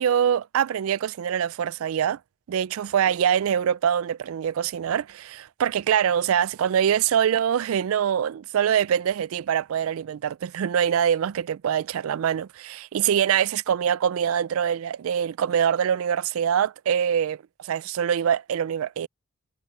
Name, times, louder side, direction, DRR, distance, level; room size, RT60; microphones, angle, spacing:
voice 1, 0.0-2.2 2.5-19.1, right 8 dB, 75° right, 0.3 m, -24 dB
head